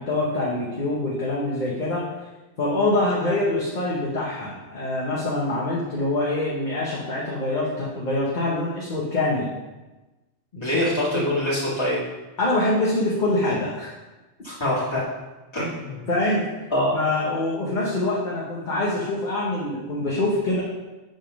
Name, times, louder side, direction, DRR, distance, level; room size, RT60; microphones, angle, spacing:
voice 1, 0.0-2.0 2.6-9.5 10.5-10.9 11.1-11.3 12.4-13.9 16.1-16.4 16.9-20.6, left 2 dB, 40° left, -5 dB, 1.1 m, -25 dB
voice 2, 10.6-12.0 14.4-15.0 15.5-16.0 16.7-17.0, left 1 dB, 25° left, -7 dB, 2.1 m, -24 dB
7.8 x 3.6 x 5.1 m, 1.1 s
omnidirectional pair, 1.2 m